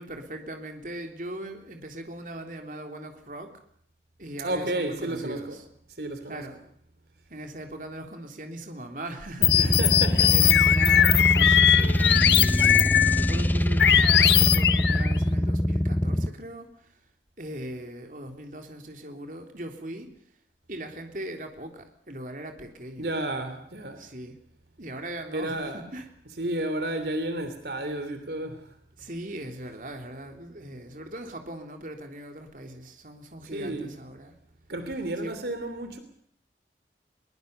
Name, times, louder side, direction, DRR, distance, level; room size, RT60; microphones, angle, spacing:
voice 1, 0.0-3.5 4.2-5.6 6.3-6.6 7.3-16.9 17.4-20.1 20.7-23.1 24.0-24.4 24.8-26.1 29.0-34.3 35.2-35.4, right 1 dB, 45° right, 4 dB, 3.5 m, -40 dB
voice 2, 4.4-5.6 6.0-6.4 9.6-10.3 10.6-10.8 23.0-24.0 25.3-25.8 26.4-28.6 33.5-33.9 34.7-36.0, right 1 dB, 65° right, 9 dB, 3.2 m, -32 dB
sound 1, 9.4-13.4 13.8-15.1, left 11 dB, 75° left, 1.3 m, -20 dB
sound 2, 9.4-16.3, equal, 10° left, 0.9 m, -24 dB
23.0 x 22.0 x 6.9 m, 0.66 s
head